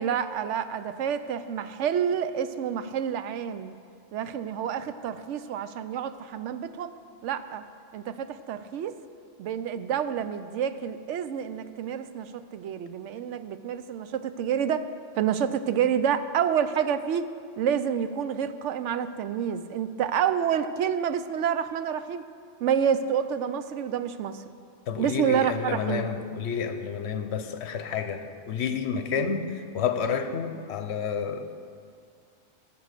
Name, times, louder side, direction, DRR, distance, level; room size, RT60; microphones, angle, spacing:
voice 1, 0.0-3.7 4.1-6.9 7.2-7.6 7.9-9.0 9.4-14.9 15.2-17.3 17.6-22.2 22.6-24.4 25.0-26.1, right 8 dB, 75° right, 12 dB, 0.9 m, -28 dB
voice 2, 24.9-29.5 29.7-31.4, left 6 dB, 65° left, 8 dB, 1.0 m, -29 dB
14.0 x 6.9 x 6.6 m, 2.3 s
omnidirectional pair, 1.3 m